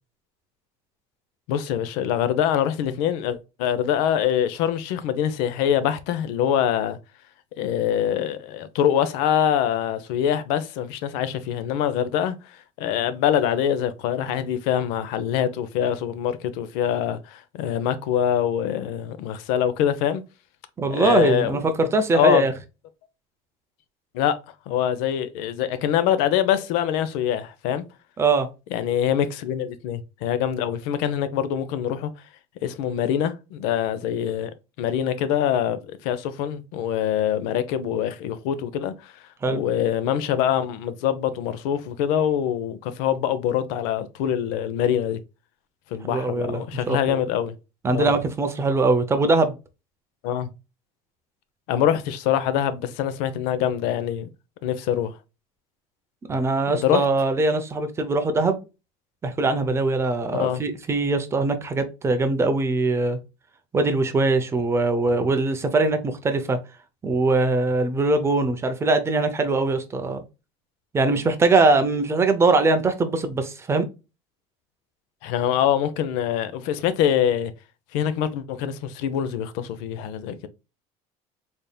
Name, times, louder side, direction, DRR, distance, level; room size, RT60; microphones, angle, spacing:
voice 1, 1.5-7.0 7.6-20.2 20.9-21.6 22.1-22.5 24.1-24.4 24.7-27.8 28.7-32.1 32.6-34.5 34.8-39.1 39.5-45.2 45.9-47.5 47.9-48.2 50.2-50.5 51.7-54.3 54.6-55.1 56.8-57.0 60.3-60.6 75.2-77.5 77.9-80.5, left 9 dB, 85° left, 0.7 m, -24 dB
voice 2, 20.8-22.5 28.2-28.5 39.4-39.6 46.1-46.6 46.9-47.2 47.8-49.5 56.3-58.6 59.2-63.2 63.7-66.6 67.0-70.2 70.9-73.9, right 3 dB, 15° right, 0.6 m, -22 dB
4.1 x 3.4 x 2.2 m
cardioid pair, 160°, 15 cm